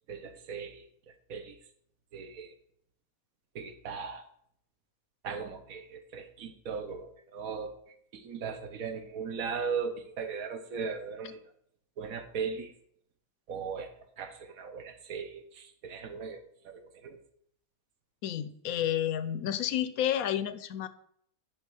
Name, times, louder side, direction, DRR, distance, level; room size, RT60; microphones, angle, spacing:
voice 1, 0.1-0.8 1.3-1.6 2.1-2.5 3.5-4.2 5.2-7.7 8.1-11.4 12.0-12.7 13.5-17.2, right 5 dB, 80° right, 8 dB, 1.3 m, -38 dB
voice 2, 18.2-20.9, left 10 dB, 90° left, 14 dB, 1.1 m, -30 dB
9.9 x 3.3 x 6.2 m, 0.68 s
omnidirectional pair, 1.5 m